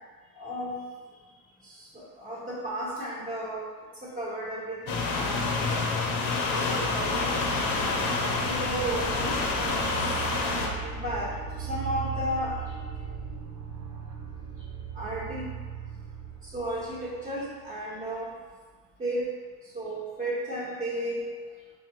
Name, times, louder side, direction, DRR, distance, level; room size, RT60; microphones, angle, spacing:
voice 1, 0.4-0.7 1.6-3.7 4.0-5.8 6.5-7.4 8.4-9.9 10.4-11.3 11.6-12.5 15.0-15.5 16.5-18.3 19.0-19.3 19.7-21.2, right 1 dB, 20° right, -7 dB, 0.9 m, -34 dB
sound 1, 4.8-17.7, right 7 dB, 45° right, 0.6 m, -39 dB
sound 2, 4.9-10.7, left 3 dB, 55° left, 0.7 m, -28 dB
5.3 x 2.1 x 2.8 m, 1.5 s
supercardioid pair, 100°, 42 cm